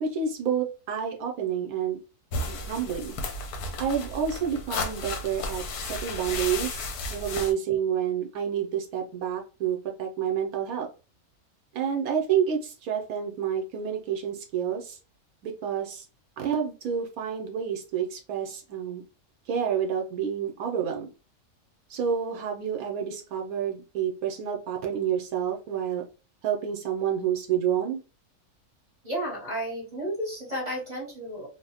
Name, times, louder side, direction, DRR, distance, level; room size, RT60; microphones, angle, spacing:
voice 1, 0.0-2.0 2.5-3.2 3.8-10.9 11.7-15.0 15.4-16.0 16.4-19.0 19.5-21.1 21.9-26.0 26.4-28.0, right 8 dB, 75° right, 2 dB, 1.0 m, -29 dB
sound 1, 2.3-7.5, left 2 dB, 90° left, 1.1 m, -33 dB
voice 2, 29.0-31.5, equal, 35° right, -4 dB, 0.8 m, -32 dB
2.9 x 2.0 x 2.7 m, 0.33 s
omnidirectional pair, 1.6 m